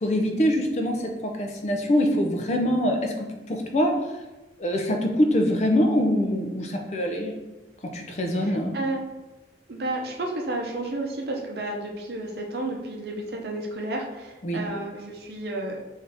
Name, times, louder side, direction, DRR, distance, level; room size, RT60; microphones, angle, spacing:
voice 1, 0.0-3.1 3.5-3.9 4.6-7.3 7.9-8.7 14.4-14.6, equal, 40° left, 3 dB, 0.4 m, -24 dB
voice 2, 8.4-9.0 9.7-15.8, right 2 dB, 65° right, 1 dB, 0.6 m, -32 dB
3.6 x 2.7 x 3.3 m, 1.1 s
head